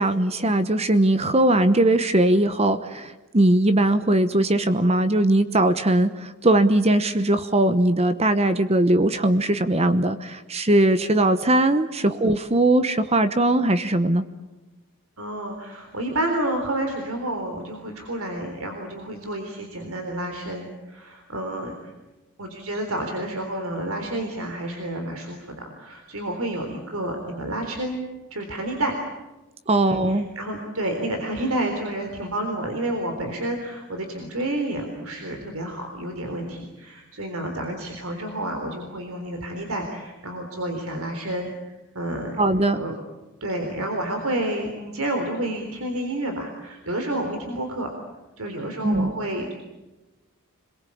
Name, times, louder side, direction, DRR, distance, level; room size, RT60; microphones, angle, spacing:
voice 1, 0.0-14.2 29.7-30.3 42.4-42.8 48.8-49.1, right 1 dB, 30° right, 11 dB, 1.0 m, -20 dB
voice 2, 15.2-21.9 22.4-28.0 28.3-29.0 29.9-42.4 42.7-42.9 43.4-47.9 48.4-49.5, right 1 dB, 70° right, 4 dB, 3.7 m, -30 dB
27.0 x 22.0 x 8.6 m, 1.1 s
head